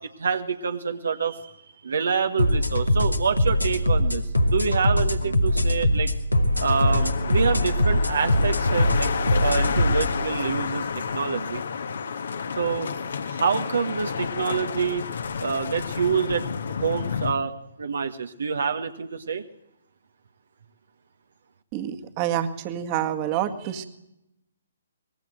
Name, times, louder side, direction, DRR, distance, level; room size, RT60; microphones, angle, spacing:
voice 1, 0.0-1.5 1.8-6.1 6.6-9.1 9.4-11.6 12.6-12.9 13.3-15.1 15.4-16.5 16.8-19.4, right 6 dB, 60° right, 7 dB, 1.4 m, -27 dB
sound 1, 2.4-10.1, left 1 dB, 85° left, 2.2 m, -22 dB
sound 2, 6.5-17.3, left 6 dB, 55° left, 1.5 m, -30 dB
voice 2, 21.7-23.9, right 11 dB, 25° right, 7 dB, 1.8 m, -27 dB
24.0 x 20.5 x 7.9 m, 0.86 s
figure-of-eight pair, 130°, 0 cm